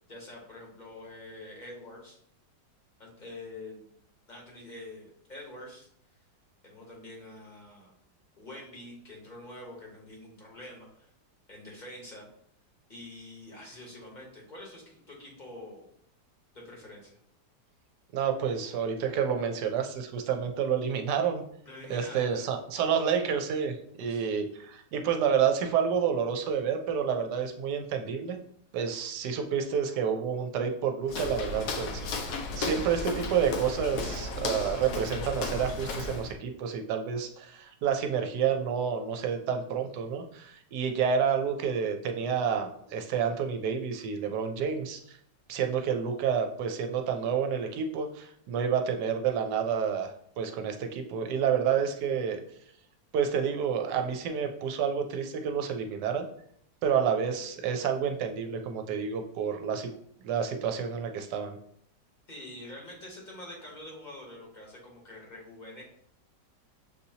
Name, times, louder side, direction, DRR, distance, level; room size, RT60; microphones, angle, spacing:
voice 1, 0.1-2.2 3.0-3.9 4.3-5.9 6.6-7.9 8.4-11.1 11.5-12.3 12.9-15.9 16.5-17.2 21.6-22.4 24.1-24.2 32.6-32.9 62.3-65.8, left 1 dB, 30° left, -2 dB, 1.0 m, -46 dB
voice 2, 18.1-21.4 21.9-28.4 28.7-45.2 45.5-52.4 53.1-56.3 56.8-59.9 60.2-61.6, right 7 dB, 75° right, 5 dB, 1.1 m, -29 dB
Walk footsteps, 31.1-36.3, left 3 dB, 70° left, 1.1 m, -34 dB
6.8 x 2.7 x 2.7 m, 0.69 s
omnidirectional pair, 1.9 m